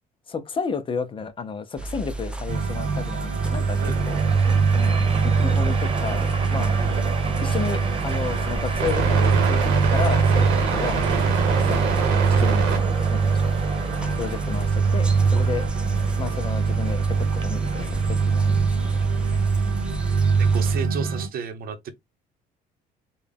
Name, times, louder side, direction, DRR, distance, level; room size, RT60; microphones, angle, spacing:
voice 1, 0.3-4.2 4.7-6.7 7.4-11.0 11.5-11.9 12.3-12.7 13.1-13.5 14.2-15.7 16.2-18.7, left 5 dB, 30° left, 0.7 m, -32 dB
sound 1, 1.8-20.8, right 2 dB, 5° right, 0.6 m, -33 dB
sound 2, 2.5-21.3, right 5 dB, 90° right, 1.2 m, -22 dB
Train, 3.2-20.8, right 4 dB, 30° right, 1.1 m, -34 dB
voice 2, 3.8-4.3 6.8-7.0 15.7-15.8 20.4-21.9, right 6 dB, 60° right, 0.9 m, -33 dB
3.9 x 2.3 x 3.4 m
cardioid pair, 110°, 17 cm